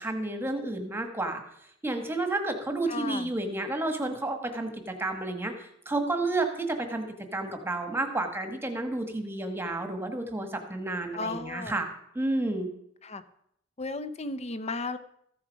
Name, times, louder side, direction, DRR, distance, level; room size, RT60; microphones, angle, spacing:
voice 1, 0.0-1.4 1.8-7.0 7.3-11.9 12.1-12.7, right 2 dB, 10° right, 5 dB, 1.3 m, -31 dB
voice 2, 2.9-3.3 11.1-11.8 13.0-13.2 13.8-15.0, left 3 dB, 35° left, 12 dB, 0.7 m, -34 dB
14.0 x 7.2 x 5.1 m, 0.74 s
head